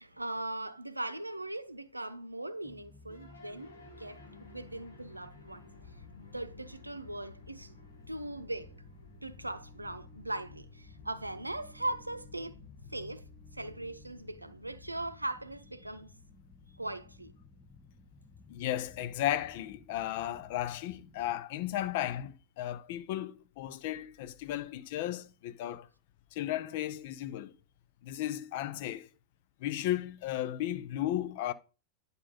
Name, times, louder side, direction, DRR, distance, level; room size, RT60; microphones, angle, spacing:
voice 1, 0.0-3.7 4.0-5.7 6.2-7.7 8.1-8.8 9.2-12.6 12.9-16.1 16.8-17.3, right 1 dB, 85° right, 0.6 m, -39 dB
sound 1, 2.6-21.3, left 4 dB, 15° left, 0.9 m, -57 dB
sound 2, 3.1-21.4, left 2 dB, 75° left, 2.0 m, -55 dB
voice 2, 18.5-25.9 26.3-27.6 28.0-29.1 29.6-31.5, left 13 dB, 50° left, 0.7 m, -35 dB
9.9 x 5.4 x 4.1 m
figure-of-eight pair, 90°, 0 cm